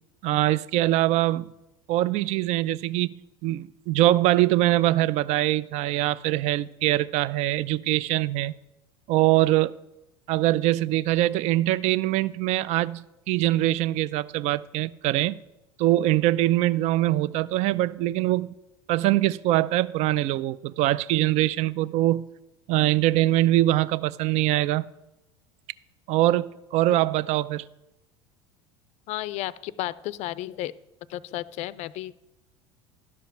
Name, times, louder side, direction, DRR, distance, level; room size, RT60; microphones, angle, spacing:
voice 1, 0.2-1.5 1.9-3.1 3.4-8.5 9.1-9.7 10.3-15.4 15.8-18.5 18.9-22.3 22.7-24.8 26.1-27.6, right 15 dB, 50° right, 0.4 m, -23 dB
voice 2, 29.1-30.7 31.1-32.1, left 15 dB, 50° left, 0.4 m, -33 dB
12.0 x 5.1 x 5.7 m
hypercardioid pair, 85°, 15 cm